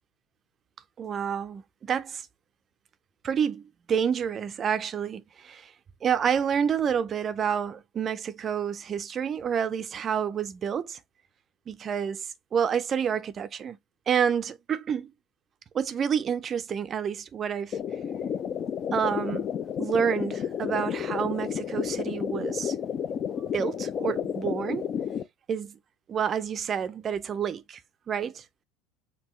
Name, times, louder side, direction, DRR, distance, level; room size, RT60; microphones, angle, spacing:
voice 1, 1.0-2.3 3.2-5.7 6.0-11.0 11.7-13.8 14.1-15.1 15.7-17.8 18.9-19.5 19.8-22.8 23.5-24.8 25.5-25.8 26.1-27.8 28.1-28.4, right 7 dB, 35° right, 0.4 m, -29 dB
sound 1, 17.7-25.2, left 8 dB, 45° left, 0.4 m, -31 dB
5.4 x 2.8 x 3.0 m
supercardioid pair, 90°, 0 cm